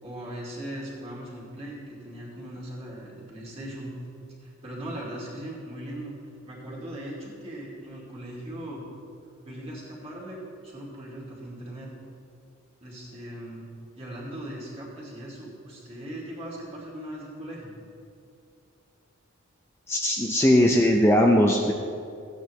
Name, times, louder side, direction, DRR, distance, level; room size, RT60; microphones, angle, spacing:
voice 1, 0.0-3.9 4.4-6.1 6.5-8.8 9.4-10.4 10.6-11.9 12.8-13.7 13.9-17.8, right 1 dB, 30° right, -5 dB, 2.4 m, -39 dB
voice 2, 19.9-21.7, left 1 dB, 10° left, 0 dB, 0.5 m, -19 dB
15.0 x 9.0 x 3.2 m, 2.5 s
head